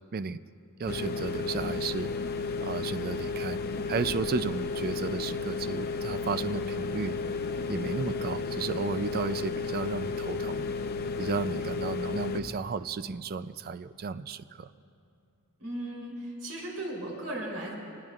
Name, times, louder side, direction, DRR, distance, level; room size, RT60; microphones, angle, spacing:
voice 1, 0.8-2.1 2.6-3.6 3.9-7.2 7.7-10.6 11.2-14.7, right 4 dB, 45° right, 13 dB, 0.4 m, -33 dB
sound 1, 0.9-12.4, left 4 dB, 45° left, 0.7 m, -33 dB
voice 2, 15.6-17.7, right 1 dB, 90° right, -2 dB, 3.5 m, -36 dB
25.0 x 19.5 x 2.4 m, 2.5 s
head